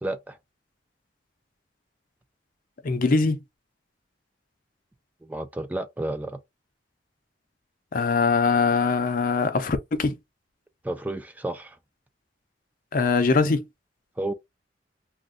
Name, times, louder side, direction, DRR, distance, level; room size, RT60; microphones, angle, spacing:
voice 1, 0.0-0.4 5.2-6.4 10.8-11.8 14.2-14.3, right 1 dB, 10° right, 0.3 m, -31 dB
voice 2, 2.8-3.4 7.9-10.2 12.9-13.6, left 4 dB, 50° left, 0.5 m, -22 dB
2.5 x 2.2 x 3.6 m
head